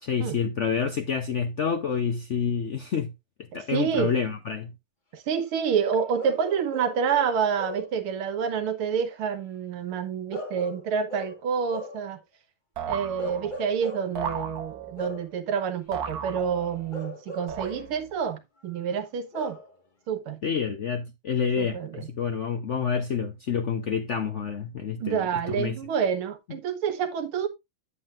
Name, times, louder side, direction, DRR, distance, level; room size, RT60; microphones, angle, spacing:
voice 1, 0.0-3.1 3.5-4.7 20.4-25.3 25.6-25.8, left 6 dB, 75° left, 0.6 m, -28 dB
voice 2, 3.7-4.1 5.1-12.2 12.9-19.6 20.1-20.4 21.6-22.1 25.0-27.5, right 7 dB, 85° right, 1.9 m, -28 dB
Bark / Livestock farm animals working animals, 6.2-8.0 10.3-12.1 13.2-14.2 15.0-15.4 16.9-18.0 19.3-19.7, left 1 dB, 25° left, 1.5 m, -38 dB
sound 1, 12.8-13.7 14.1-15.1 15.9-16.9 17.5-18.2, right 7 dB, 50° right, 1.5 m, -35 dB
9.7 x 7.4 x 2.5 m
omnidirectional pair, 2.3 m